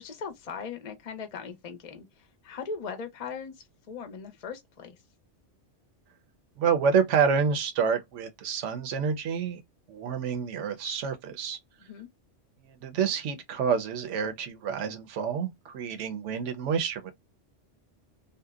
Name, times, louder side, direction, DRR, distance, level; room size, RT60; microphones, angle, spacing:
voice 1, 0.0-5.0 11.8-12.1, left 5 dB, 45° left, 0.5 m, -39 dB
voice 2, 6.6-9.6 9.9-11.6 12.7-17.1, right 6 dB, 80° right, 1.0 m, -28 dB
2.7 x 2.1 x 2.3 m
omnidirectional pair, 1.2 m